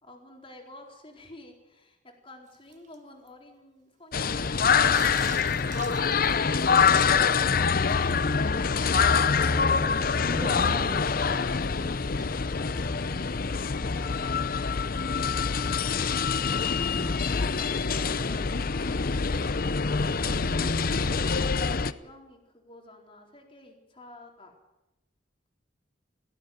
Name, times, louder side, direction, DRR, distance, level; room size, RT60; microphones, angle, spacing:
voice 1, 0.0-6.5 12.3-14.8 16.7-18.9 20.0-24.5, left 1 dB, 30° left, 1 dB, 4.2 m, -50 dB
Bathtub (filling or washing), 2.5-2.9 3.3-3.4 4.8-8.1 8.5-8.6 8.9-9.0 10.4-10.5 12.2-12.3, right 7 dB, 40° right, 1.2 m, -45 dB
sound 1, 4.1-21.9, left 5 dB, 50° left, 0.7 m, -25 dB
voice 2, 9.4-11.4 17.0-17.2 20.1-20.8, right 1 dB, 15° right, 5 dB, 1.1 m, -38 dB
19.0 x 15.0 x 9.3 m, 0.96 s
head